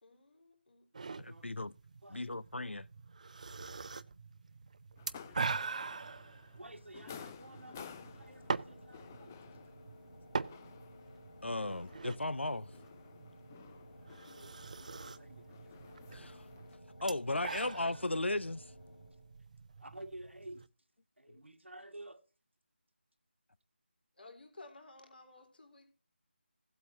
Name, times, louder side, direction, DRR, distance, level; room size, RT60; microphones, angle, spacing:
voice 1, 0.0-1.6 24.2-25.9, left 2 dB, 60° left, 3.7 m, -56 dB
sound 1, 0.9-20.7, right 4 dB, 40° right, 0.5 m, -44 dB
voice 2, 1.2-1.7 2.1-2.9 11.4-12.7 16.1-16.5 17.0-18.6, left 2 dB, 90° left, 0.5 m, -36 dB
sound 2, 5.0-16.8, left 7 dB, 15° left, 0.4 m, -55 dB
voice 3, 5.3-6.0 6.6-9.4 14.2-16.0 19.8-20.7 21.2-22.2, right 1 dB, 90° right, 1.7 m, -52 dB
sound 3, 7.8-19.5, left 2 dB, 75° left, 3.9 m, -57 dB
16.5 x 8.2 x 2.7 m
figure-of-eight pair, 165°, 6 cm